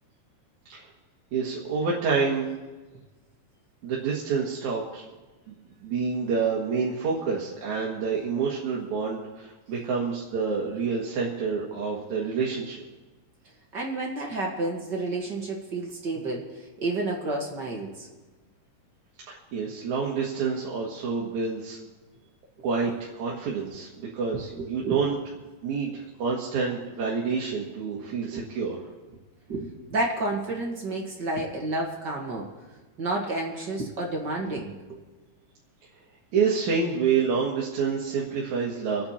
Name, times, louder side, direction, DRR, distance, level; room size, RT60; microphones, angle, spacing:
voice 1, 1.3-2.5 3.8-5.0 5.5-5.6 5.8-12.8 19.3-21.8 22.6-22.9 23.2-25.2 25.6-28.8 36.3-39.1, right 5 dB, 65° right, -4 dB, 3.0 m, -28 dB
voice 2, 13.7-18.1 24.6-25.0 28.3-28.4 29.5-32.5 33.0-35.0, right 2 dB, 40° right, -1 dB, 1.9 m, -30 dB
27.0 x 9.5 x 4.4 m, 1.2 s
omnidirectional pair, 3.9 m